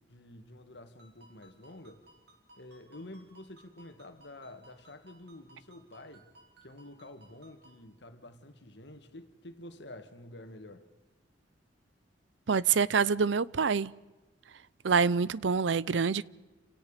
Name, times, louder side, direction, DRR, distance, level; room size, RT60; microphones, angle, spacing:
voice 1, 0.0-2.1 2.6-6.3 6.6-10.9, left 1 dB, 65° left, 2.0 m, -49 dB
Ringtone, 1.0-7.9, right 1 dB, 60° right, 5.2 m, -61 dB
voice 2, 12.5-13.9 14.8-16.2, right 5 dB, 80° right, 0.6 m, -26 dB
30.0 x 17.0 x 5.1 m
head